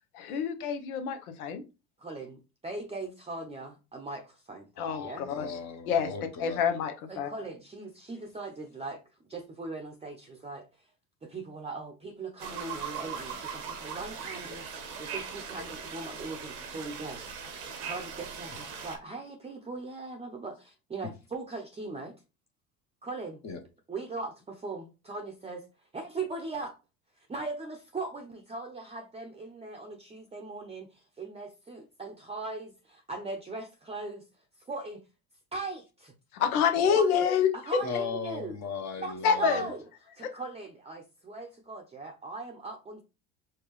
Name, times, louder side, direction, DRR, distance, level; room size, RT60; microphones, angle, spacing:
voice 1, 0.1-1.6 4.8-5.6 5.9-6.1 6.4-7.3 36.3-37.8 39.2-39.6 40.2-40.3, left 7 dB, 85° left, 8 dB, 0.9 m, -27 dB
voice 2, 2.0-4.7 5.0-5.2 7.1-9.0 9.3-10.7 11.2-17.2 17.8-22.1 23.0-23.4 23.9-25.6 25.9-26.7 27.3-34.2 34.7-35.0 35.5-36.1 36.9-37.2 37.5-38.6 39.0-39.8 40.2-43.0, right 3 dB, 15° right, 3 dB, 0.6 m, -39 dB
voice 3, 4.8-6.6 23.4-23.6 37.8-39.7, left 5 dB, 40° left, 5 dB, 0.9 m, -37 dB
sound 1, 12.4-19.0, right 6 dB, 85° right, 1.2 m, -39 dB
4.5 x 2.3 x 3.1 m, 0.29 s
hypercardioid pair, 80°, 43 cm